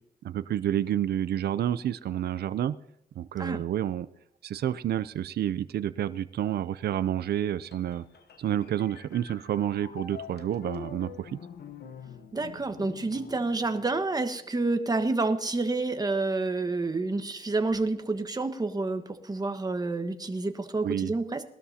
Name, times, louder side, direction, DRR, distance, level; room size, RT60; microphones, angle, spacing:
voice 1, 0.2-2.8 3.2-4.1 4.4-8.0 8.4-11.4 20.8-21.1, right 10 dB, 80° right, 14 dB, 0.5 m, -29 dB
sound 1, 7.7-14.4, left 7 dB, 80° left, 1.0 m, -46 dB
voice 2, 12.3-21.4, right 3 dB, 25° right, 7 dB, 1.4 m, -29 dB
20.0 x 12.5 x 2.8 m, 0.79 s
cardioid pair, 85°, 17 cm